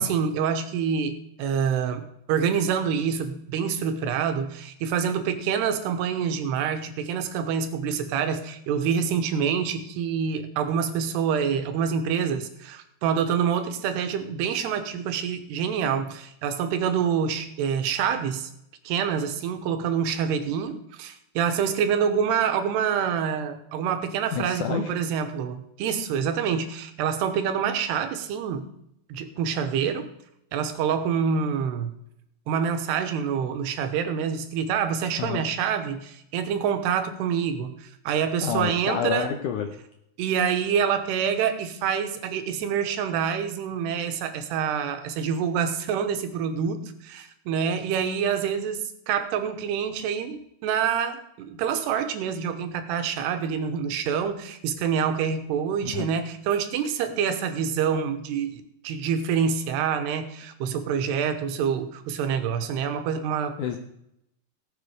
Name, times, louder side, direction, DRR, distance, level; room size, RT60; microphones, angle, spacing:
voice 1, 0.0-18.5 18.8-28.7 29.1-30.1 30.5-31.9 32.5-39.3 40.2-63.8, right 7 dB, 90° right, 8 dB, 3.1 m, -26 dB
voice 2, 24.3-24.9 35.2-35.4 38.4-39.7 55.8-56.1 63.6-63.8, left 8 dB, 80° left, 5 dB, 1.8 m, -28 dB
17.5 x 7.4 x 5.0 m, 0.79 s
omnidirectional pair, 4.7 m